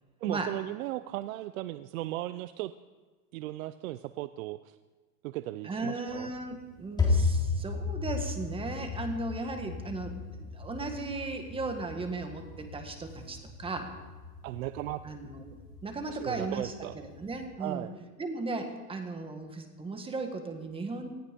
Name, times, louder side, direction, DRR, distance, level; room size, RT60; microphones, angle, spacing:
voice 1, 0.2-2.7 3.3-4.8 5.2-6.3 14.4-15.0 16.1-17.0 17.6-17.9, right 16 dB, 65° right, 13 dB, 0.7 m, -36 dB
voice 2, 5.6-13.9 15.0-17.9 18.2-21.1, right 3 dB, 10° right, 6 dB, 1.7 m, -36 dB
sound 1, 6.1-17.4, left 4 dB, 10° left, 3.6 m, -35 dB
19.0 x 14.5 x 5.2 m, 1.3 s
supercardioid pair, 140°, 45 cm